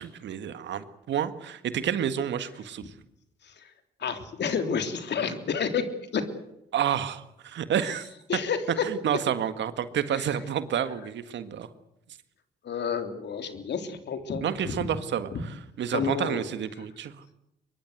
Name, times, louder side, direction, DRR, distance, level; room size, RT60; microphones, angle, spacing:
voice 1, 0.0-2.8 5.3-5.4 6.7-8.1 8.9-11.7 14.4-15.3 15.8-17.1, right 9 dB, 65° right, 11 dB, 1.8 m, -29 dB
voice 2, 3.4-3.7 4.0-5.8 6.1-6.2 8.3-8.8 10.1-10.3 12.6-15.0 15.3-15.4 15.9-16.4, left 6 dB, 60° left, 7 dB, 3.4 m, -30 dB
24.0 x 22.5 x 8.0 m, 0.81 s
hypercardioid pair, 45°, 20 cm